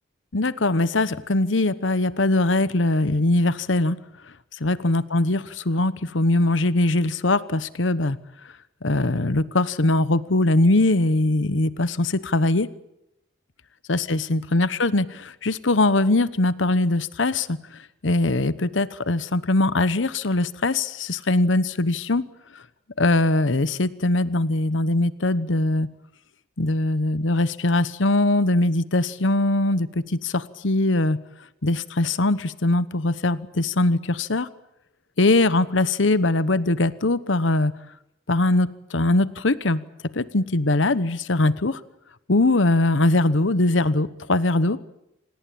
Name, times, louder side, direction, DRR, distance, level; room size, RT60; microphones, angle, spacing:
voice 1, 0.3-4.0 4.6-8.2 8.8-12.7 13.9-17.6 18.0-22.2 22.5-22.6 23.0-25.9 26.6-31.2 31.6-34.5 35.2-37.7 38.3-39.8 40.1-41.8 42.3-44.8, left 2 dB, 75° left, 15 dB, 1.1 m, -21 dB
27.0 x 19.0 x 8.7 m, 0.83 s
head